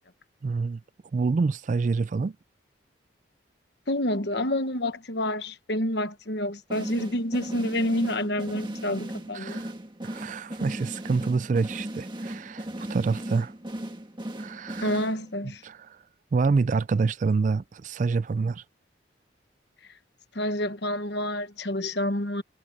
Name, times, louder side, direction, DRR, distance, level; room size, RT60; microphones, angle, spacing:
voice 1, 0.4-0.8 1.1-2.4 9.3-9.7 10.0-13.5 14.4-14.9 15.6-15.8 16.3-18.6, right 4 dB, 40° right, 0.3 m, -27 dB
voice 2, 3.9-9.6 14.8-15.6 20.3-22.4, left 1 dB, 60° left, 1.3 m, -28 dB
sound 1, 6.7-15.5, right 1 dB, 25° right, 1.8 m, -37 dB
head